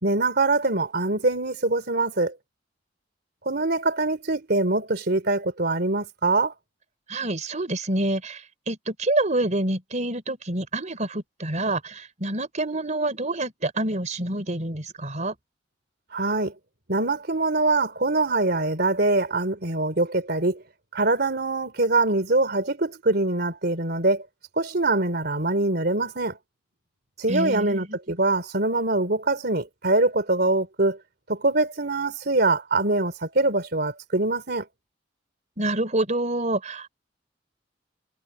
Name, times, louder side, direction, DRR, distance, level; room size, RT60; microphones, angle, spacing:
voice 1, 0.0-2.3 3.4-6.5 16.1-16.5 16.9-20.6 20.9-24.3 24.6-26.4 27.2-31.0 31.3-34.6, right 2 dB, 60° right, 3.4 m, -23 dB
voice 2, 7.1-15.4 27.3-27.9 35.6-36.9, right 2 dB, 40° right, 3.8 m, -27 dB
head